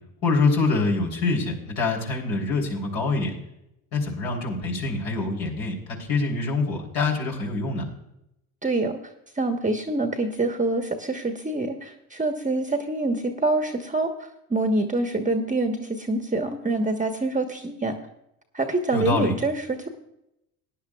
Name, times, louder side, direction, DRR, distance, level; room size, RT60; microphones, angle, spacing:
voice 1, 0.2-3.3 3.9-7.8 18.9-19.3, left 3 dB, 60° left, 0 dB, 3.5 m, -25 dB
voice 2, 8.6-9.0 9.4-14.1 14.5-17.9 18.5-19.9, right 2 dB, 20° right, 5 dB, 1.2 m, -25 dB
18.5 x 10.0 x 2.4 m, 0.84 s
hypercardioid pair, 65°, 43 cm